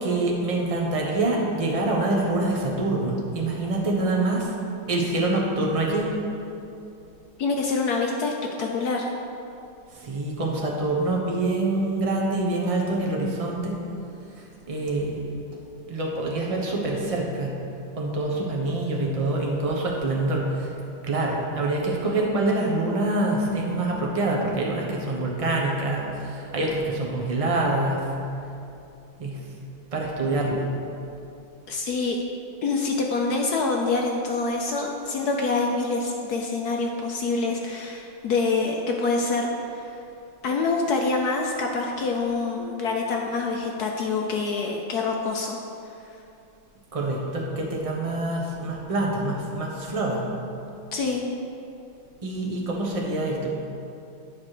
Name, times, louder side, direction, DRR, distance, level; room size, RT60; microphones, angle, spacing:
voice 1, 0.0-4.5 4.9-6.1 10.0-13.7 14.7-15.2 15.9-17.5 18.0-20.7 21.0-28.0 29.2-29.4 29.9-30.7 46.9-50.2 52.2-53.5, right 2 dB, 25° right, -2 dB, 0.8 m, -25 dB
voice 2, 7.4-8.3 8.6-9.1 31.7-32.2 32.6-39.8 40.4-45.6 50.9-51.2, left 3 dB, 65° left, 1 dB, 1.0 m, -26 dB
9.4 x 4.7 x 6.6 m, 2.7 s
omnidirectional pair, 2.2 m